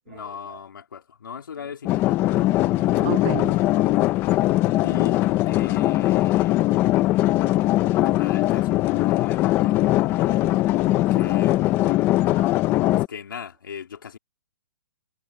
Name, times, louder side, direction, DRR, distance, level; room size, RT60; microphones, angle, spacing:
voice 1, 0.1-2.2 4.8-6.9 8.0-10.5 11.1-12.3 12.9-14.2, left 7 dB, 85° left, 3.3 m, -39 dB
sound 1, 1.9-13.1, left 16 dB, 20° left, 0.8 m, -21 dB
voice 2, 2.7-4.5 10.4-10.6 12.4-12.6, right 27 dB, 25° right, 0.5 m, -35 dB
hypercardioid pair, 160°, 11 cm